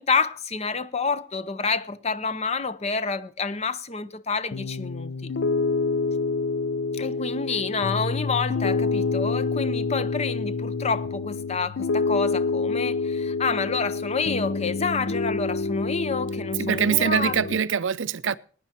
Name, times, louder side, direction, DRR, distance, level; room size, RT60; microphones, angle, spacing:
voice 1, 0.0-5.3 6.9-17.3, left 4 dB, 30° left, 0.6 m, -28 dB
Piano, 4.5-17.6, left 4 dB, 70° left, 0.5 m, -27 dB
voice 2, 16.6-18.4, right 7 dB, 70° right, 0.5 m, -23 dB
17.0 x 10.0 x 4.4 m
head